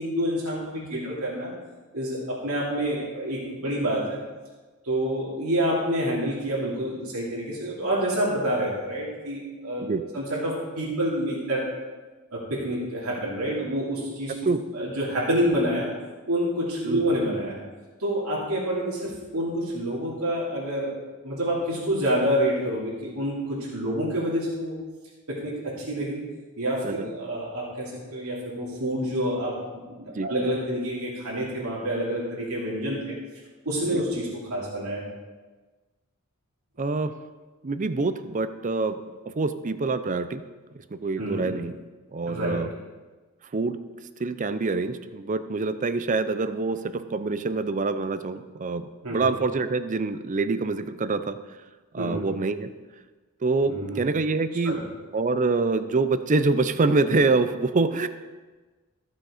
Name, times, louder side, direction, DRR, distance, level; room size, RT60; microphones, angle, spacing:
voice 1, 0.0-1.5 1.9-4.2 4.8-9.9 10.1-11.7 12.3-14.3 14.7-15.9 16.3-17.6 18.0-20.9 21.2-24.7 25.3-26.3 26.6-33.2 33.6-35.0 41.2-41.5 42.3-42.6 49.0-49.2 52.0-52.2 53.7-54.0 54.6-54.8, equal, 85° right, -6 dB, 2.7 m, -28 dB
voice 2, 36.8-37.1 37.6-39.0 39.4-40.4 40.9-41.7 42.1-42.7 43.5-43.8 44.2-51.4 51.9-52.7 53.4-54.8 55.1-58.1, right 3 dB, 35° right, 12 dB, 0.5 m, -25 dB
14.5 x 6.3 x 5.0 m, 1.3 s
head